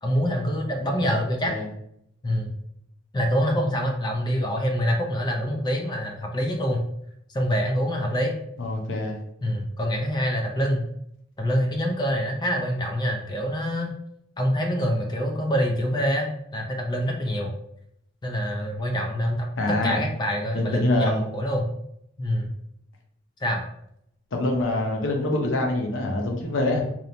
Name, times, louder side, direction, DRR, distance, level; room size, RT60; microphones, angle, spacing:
voice 1, 0.0-1.5 2.2-2.5 3.1-6.8 7.3-8.4 9.4-10.8 11.4-13.9 14.4-17.5 18.2-21.6 22.2-22.5 23.4-23.6, equal, 20° left, 1 dB, 0.3 m, -25 dB
voice 2, 8.6-9.2 19.6-20.0 20.5-21.2 24.3-26.8, left 2 dB, 70° left, 1 dB, 0.6 m, -25 dB
2.9 x 2.0 x 2.5 m, 0.75 s
head